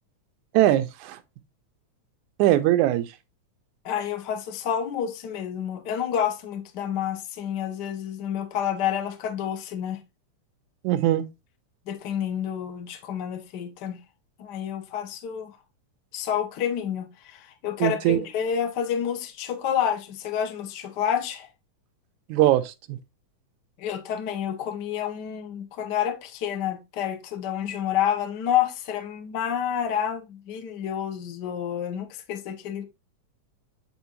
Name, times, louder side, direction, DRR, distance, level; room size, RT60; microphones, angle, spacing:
voice 1, 0.5-1.2 2.4-3.1 10.8-11.2 17.8-18.2 22.3-23.0, right 14 dB, 85° right, 2.0 m, -21 dB
voice 2, 3.8-10.0 11.9-14.0 14.4-15.6 16.1-21.5 23.8-32.8, left 9 dB, 80° left, 0.9 m, -29 dB
9.4 x 3.7 x 2.9 m
omnidirectional pair, 3.4 m